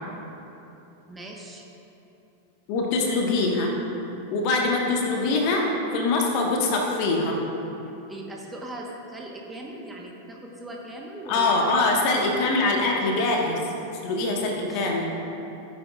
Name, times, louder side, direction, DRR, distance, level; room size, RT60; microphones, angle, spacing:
voice 1, 1.1-1.6 7.9-12.0 14.4-14.9, right 1 dB, 10° right, -1 dB, 1.2 m, -39 dB
voice 2, 2.7-3.7 4.3-7.4 11.3-13.6 14.0-15.1, left 3 dB, 45° left, 0 dB, 1.5 m, -23 dB
16.0 x 9.2 x 2.5 m, 2.9 s
figure-of-eight pair, 90°, 0 cm